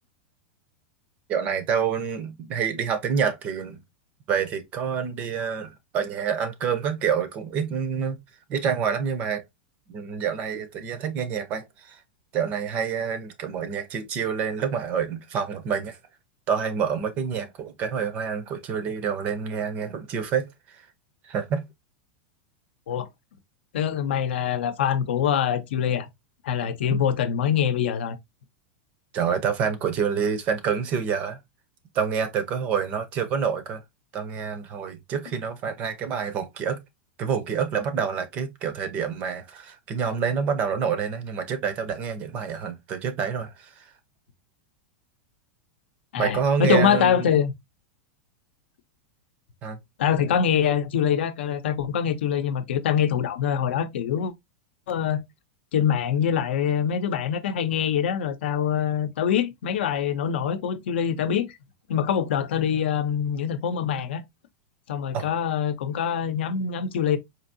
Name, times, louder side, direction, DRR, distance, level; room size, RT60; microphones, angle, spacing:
voice 1, 1.3-3.8 4.3-8.2 8.5-9.4 9.9-12.0 12.3-16.0 16.5-20.9 21.2-21.6 26.9-27.0 29.1-31.4 31.9-33.8 34.1-36.8 37.2-43.9 46.2-47.3 49.6-49.8 65.1-65.4, right 7 dB, 25° right, 0.5 m, -27 dB
voice 2, 23.7-26.1 26.4-28.2 46.1-47.5 50.0-54.3 54.9-55.2 55.7-61.5 61.9-64.2 64.9-67.2, left 8 dB, 75° left, 0.7 m, -24 dB
4.4 x 2.7 x 2.6 m
supercardioid pair, 175°, 6 cm